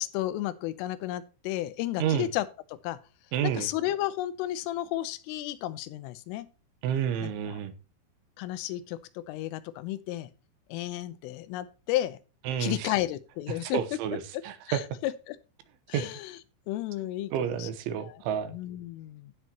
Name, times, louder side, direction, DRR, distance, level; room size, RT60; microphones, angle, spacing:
voice 1, 0.0-3.0 3.4-6.5 7.2-7.6 8.4-10.3 10.7-12.2 12.6-13.8 14.3-14.4 14.7-15.4 15.9-16.4 16.7-17.7 18.0-18.1 18.5-19.3, left 14 dB, 85° left, 15 dB, 3.4 m, -33 dB
voice 2, 3.3-3.7 6.8-7.7 12.5-12.9 13.6-14.8 15.9-16.1 17.3-18.5, right 9 dB, 75° right, 11 dB, 3.3 m, -30 dB
17.0 x 6.5 x 2.9 m, 0.32 s
omnidirectional pair, 5.7 m